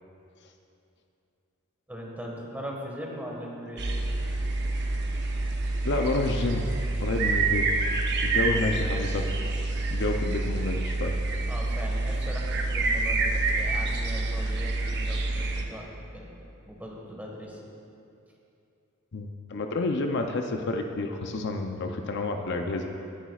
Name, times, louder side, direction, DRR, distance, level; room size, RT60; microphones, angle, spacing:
voice 1, 1.9-3.8 11.5-16.3 16.7-17.6, equal, 10° right, -2 dB, 1.5 m, -39 dB
sound 1, 3.8-15.6, right 2 dB, 50° right, 0.9 m, -27 dB
voice 2, 5.8-6.7 7.0-9.5 9.9-11.2 19.1-22.9, left 2 dB, 55° left, 4 dB, 0.6 m, -29 dB
18.5 x 10.0 x 2.4 m, 2.7 s
head